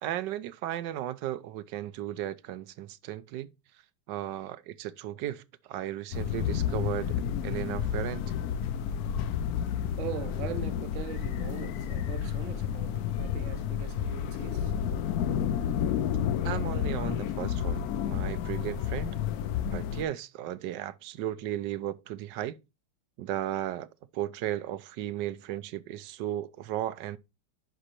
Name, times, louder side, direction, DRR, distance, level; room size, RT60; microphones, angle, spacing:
voice 1, 0.0-3.5 4.1-8.3 16.4-19.2 19.7-22.6 23.2-27.2, right 12 dB, 85° right, 1.3 m, -35 dB
sound 1, 6.1-20.0, left 9 dB, 70° left, 1.0 m, -31 dB
voice 2, 9.2-16.1, right 10 dB, 60° right, 0.8 m, -43 dB
10.0 x 5.4 x 2.9 m
omnidirectional pair, 1.8 m